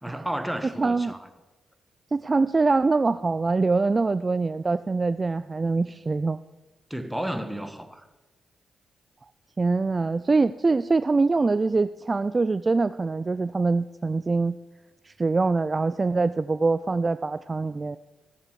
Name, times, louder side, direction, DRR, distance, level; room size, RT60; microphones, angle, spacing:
voice 1, 0.0-1.3 6.9-8.1, right 1 dB, 5° right, 8 dB, 1.3 m, -32 dB
voice 2, 0.8-1.1 2.1-6.4 9.6-14.6 15.1-18.0, right 3 dB, 35° right, 13 dB, 0.3 m, -24 dB
17.0 x 6.7 x 4.7 m, 1.2 s
supercardioid pair, 45°, 0 cm